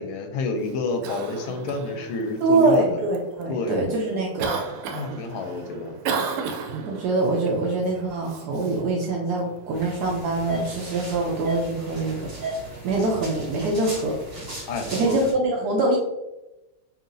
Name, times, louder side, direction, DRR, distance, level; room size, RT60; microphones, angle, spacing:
voice 1, 0.0-3.0 3.5-3.8 4.9-6.0 14.7-15.2, left 3 dB, 80° left, 5 dB, 1.4 m, -29 dB
Cough, 0.6-15.0, right 5 dB, 90° right, 1.5 m, -37 dB
voice 2, 2.4-4.5 6.9-12.2 12.8-14.1 14.9-16.0, right 2 dB, 75° right, -1 dB, 0.9 m, -24 dB
sound 1, 9.7-15.3, right 1 dB, 40° right, 1.8 m, -35 dB
5.6 x 2.5 x 2.6 m, 0.97 s
omnidirectional pair, 2.3 m